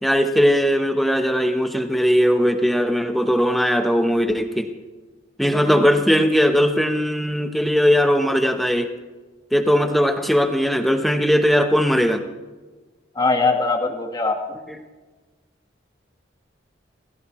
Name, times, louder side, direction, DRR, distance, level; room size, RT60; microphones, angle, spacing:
voice 1, 0.0-4.7 5.4-8.9 9.5-12.2 14.7-14.8, equal, ahead, 5 dB, 1.1 m, -19 dB
voice 2, 13.1-14.4, left 3 dB, 20° left, 3 dB, 1.6 m, -21 dB
28.5 x 15.5 x 3.2 m, 1.3 s
head